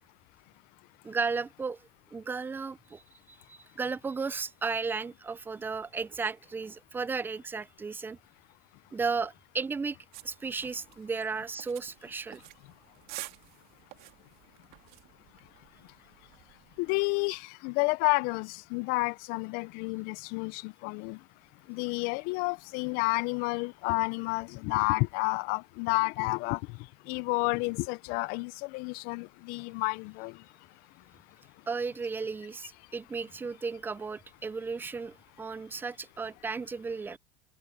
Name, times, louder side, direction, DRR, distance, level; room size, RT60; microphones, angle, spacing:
voice 1, 1.0-1.8 2.1-3.0 3.3-8.2 8.9-10.0 10.2-12.4 31.7-37.2, right 4 dB, 10° right, 0.5 m, -34 dB
sound 1, 10.1-17.1, right 18 dB, 60° right, 3.0 m, -50 dB
voice 2, 16.8-21.2 21.7-26.8 27.1-30.4, left 26 dB, 60° left, 0.5 m, -30 dB
supercardioid pair, 130°, 17 cm